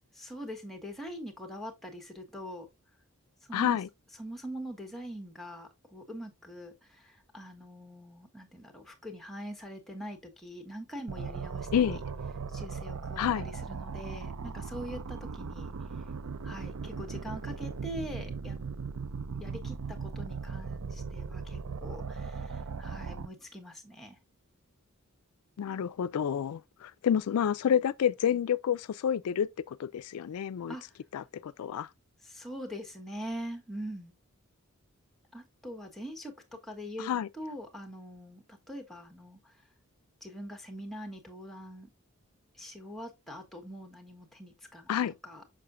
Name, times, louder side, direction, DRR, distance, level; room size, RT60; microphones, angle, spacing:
voice 1, 0.1-2.7 3.5-3.8 4.2-11.7 12.5-15.7 16.4-18.6 19.3-24.2 30.7-30.8 32.2-34.1 35.3-39.6 40.2-41.9 42.5-44.9 45.2-45.4, equal, ahead, 1.3 m, -43 dB
voice 2, 3.5-3.9 11.7-12.0 13.2-13.5 25.6-30.7 31.1-31.9 37.0-37.3 44.9-45.1, left 8 dB, 85° left, 0.3 m, -29 dB
sound 1, 11.1-23.3, right 5 dB, 85° right, 0.5 m, -38 dB
6.7 x 5.7 x 2.5 m
head